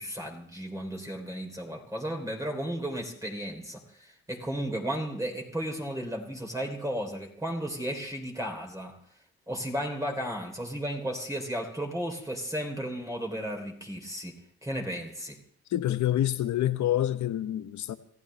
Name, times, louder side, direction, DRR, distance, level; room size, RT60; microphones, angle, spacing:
voice 1, 0.0-9.0 9.5-15.4, equal, 10° right, 3.0 m, -34 dB
voice 2, 15.7-17.9, left 12 dB, 70° left, 1.0 m, -27 dB
27.5 x 14.5 x 3.2 m
cardioid pair, 90°, 30 cm